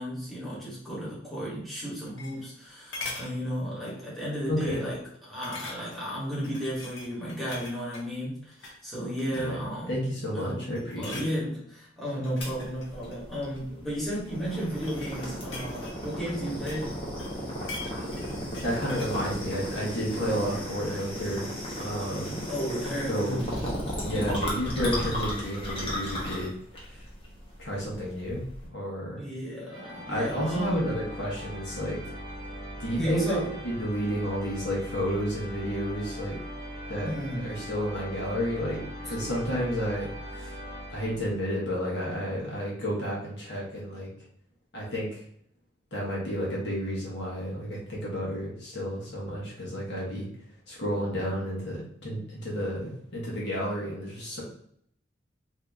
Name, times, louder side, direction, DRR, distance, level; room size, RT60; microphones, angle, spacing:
voice 1, 0.0-9.9 10.3-10.7 11.0-17.0 22.5-23.9 29.2-30.9 33.0-33.6 37.0-37.6, equal, ahead, -9 dB, 1.2 m, -33 dB
sound 1, 1.8-2.6 2.9-3.3 3.8-4.1 4.4-4.5 5.4-6.1 6.4-8.1 8.5-8.8 9.2-9.7 10.2-10.5 10.7-11.3 12.1-13.7 14.5-16.9 17.2-19.2 19.5-19.6, left 3 dB, 85° left, 0.8 m, -42 dB
voice 2, 4.5-4.8 9.3-9.6 9.9-11.4 17.9-18.1 18.6-22.4 23.1-23.4 24.0-26.5 26.9-27.1 27.6-28.4 28.7-29.2 30.1-32.0 32.8-33.4 33.6-36.4 36.9-38.8 39.0-40.6 40.9-44.1 44.7-45.2 45.9-50.3 50.7-54.4, equal, 65° left, -4 dB, 1.1 m, -31 dB
sound 2, 12.4-28.7, equal, 30° left, 0.9 m, -35 dB
sound 3, 29.7-41.6, equal, 25° right, 1.1 m, -40 dB
2.8 x 2.7 x 3.5 m, 0.66 s
head